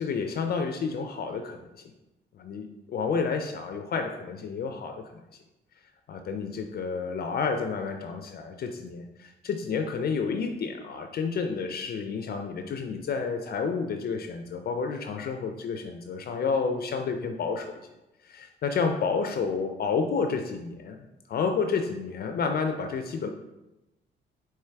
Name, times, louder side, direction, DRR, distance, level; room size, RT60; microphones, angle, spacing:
voice 1, 0.0-1.6 2.4-5.2 6.1-17.8 18.2-21.0 21.3-23.3, left 5 dB, 50° left, 6 dB, 0.4 m, -30 dB
4.5 x 3.0 x 3.4 m, 0.97 s
cardioid pair, 90°, 20 cm